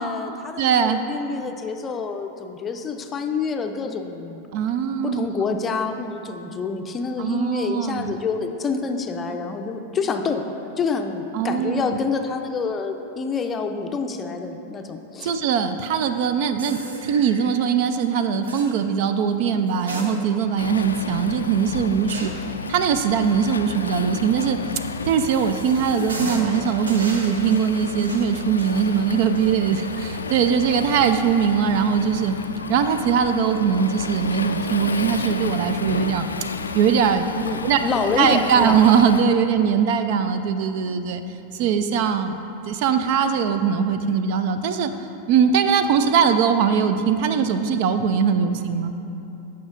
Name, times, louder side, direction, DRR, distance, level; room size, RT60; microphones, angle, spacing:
voice 1, 0.0-4.5 5.0-10.5 10.8-15.4 37.4-38.8, left 5 dB, 20° left, 5 dB, 0.5 m, -27 dB
voice 2, 0.6-1.1 4.5-5.3 7.2-8.1 11.3-12.0 15.2-22.3 22.7-24.6 25.0-32.4 32.7-36.3 36.7-37.8 38.2-41.2 41.5-42.4 42.7-48.9, right 7 dB, 50° right, 9 dB, 0.4 m, -21 dB
sound 1, 16.6-17.5 18.5-18.8 19.7-20.6 20.9-21.0 22.1-22.5 24.6-30.7 31.0-31.1 32.1-32.4, right 1 dB, 70° right, 0.8 m, -36 dB
Waves surf, 20.6-39.2, left 4 dB, 75° left, 0.3 m, -32 dB
14.5 x 5.6 x 2.5 m, 2.9 s
figure-of-eight pair, 90°, 0 cm